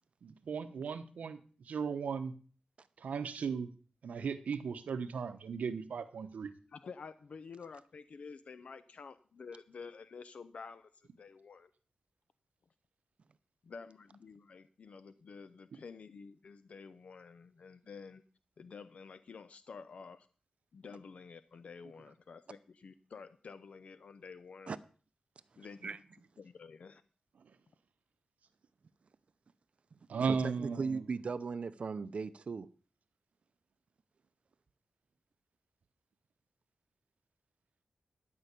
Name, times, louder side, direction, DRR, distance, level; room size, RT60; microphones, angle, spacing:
voice 1, 0.2-1.4 1.7-2.3 3.0-3.7 4.0-6.5 30.1-31.0, right 5 dB, 85° right, 1.1 m, -36 dB
voice 2, 6.7-11.7 13.6-18.2 18.6-20.3 20.7-24.8 25.6-26.0 26.4-27.0, left 5 dB, 60° left, 0.6 m, -50 dB
voice 3, 30.2-32.7, right 5 dB, 50° right, 0.6 m, -37 dB
12.5 x 5.6 x 8.4 m
wide cardioid pair, 130°, 2 cm